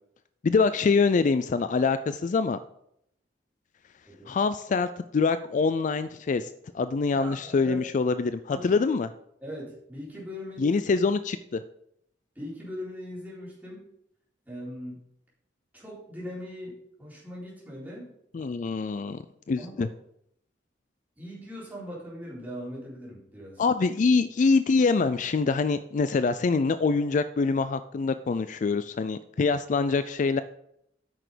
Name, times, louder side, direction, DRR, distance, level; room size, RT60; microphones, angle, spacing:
voice 1, 0.4-2.6 4.3-6.5 6.7-9.1 10.6-11.6 18.3-19.2 19.5-19.9 23.6-30.4, left 4 dB, 45° left, 12 dB, 0.4 m, -25 dB
voice 2, 7.1-7.8 8.5-8.9 9.4-10.8 12.4-13.8 14.5-15.0 15.7-18.1 18.4-18.5 19.6-19.9 21.2-23.6, equal, 10° right, -6 dB, 3.7 m, -40 dB
9.0 x 6.2 x 5.0 m, 0.74 s
head